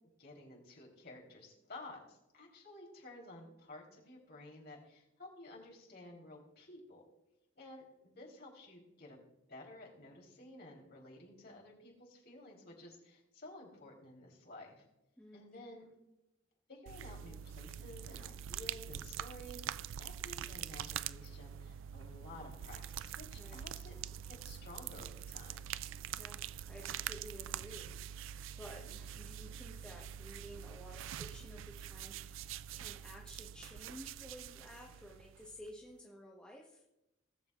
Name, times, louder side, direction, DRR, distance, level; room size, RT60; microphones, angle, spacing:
voice 1, 0.2-7.0 7.6-9.2 9.5-14.8 15.3-15.8 16.7-24.0 24.3-25.7 28.7-28.9, left 1 dB, 55° left, -1 dB, 3.6 m, -53 dB
sound 1, 16.9-35.8, right 10 dB, 70° right, 0.3 m, -45 dB
voice 2, 23.3-23.6 26.1-36.8, equal, 5° left, -2 dB, 1.2 m, -53 dB
19.0 x 7.2 x 2.5 m, 0.93 s
head